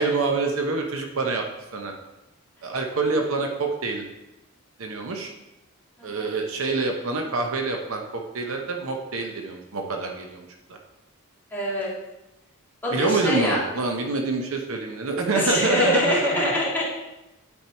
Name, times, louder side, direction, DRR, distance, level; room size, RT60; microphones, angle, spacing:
voice 1, 0.0-1.4 1.7-1.9 2.6-4.0 4.8-5.3 6.0-10.4 10.7-10.8 12.9-16.5, right 3 dB, 65° right, 2 dB, 0.8 m, -26 dB
voice 2, 11.5-11.9 12.8-13.6 15.3-16.8, equal, 10° left, -7 dB, 2.2 m, -25 dB
8.7 x 4.6 x 4.5 m, 0.98 s
head